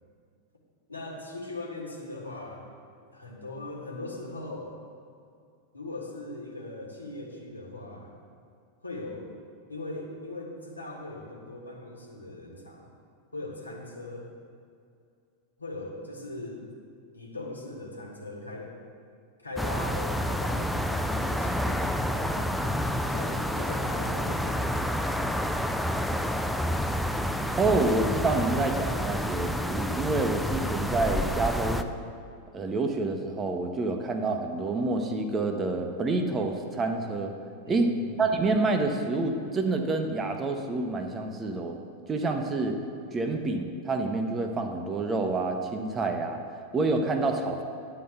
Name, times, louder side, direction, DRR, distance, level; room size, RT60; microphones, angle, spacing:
voice 1, 0.9-2.7 3.1-4.7 5.7-8.1 8.8-9.3 9.7-12.9 13.3-14.3 15.6-16.6 17.1-18.8 19.4-25.2 37.6-38.2, left 2 dB, 80° left, -2 dB, 1.4 m, -40 dB
sound 1, 19.6-31.8, equal, ahead, 0.3 m, -29 dB
voice 2, 27.6-31.9 32.5-37.3 37.7-37.9 38.2-41.8 42.1-42.8 43.1-46.4 46.7-47.6, right 3 dB, 20° right, 5 dB, 0.7 m, -28 dB
9.4 x 3.9 x 7.0 m, 2.4 s
figure-of-eight pair, 90°, 0 cm